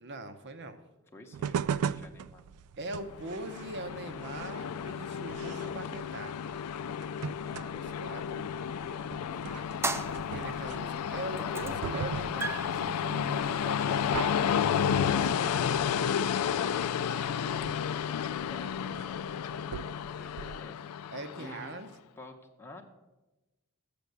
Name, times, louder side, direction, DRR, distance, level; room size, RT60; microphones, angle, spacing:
voice 1, 0.0-0.8 2.8-6.5 7.7-8.5 10.3-14.0 15.0-15.2 18.6-19.0 21.1-21.9, right 2 dB, 55° right, 8 dB, 0.8 m, -41 dB
voice 2, 1.1-2.4 18.2-18.8 20.2-20.9 21.4-21.7 22.2-22.8, left 2 dB, 10° left, 1 dB, 0.8 m, -50 dB
sound 1, 1.3-20.6, right 8 dB, 80° right, 0.3 m, -41 dB
Train, 3.1-21.8, left 8 dB, 90° left, 0.4 m, -32 dB
sound 2, 9.8-10.8 11.4-11.9 12.2-14.9, right 3 dB, 10° right, 0.4 m, -37 dB
7.2 x 6.9 x 7.8 m, 1.1 s
head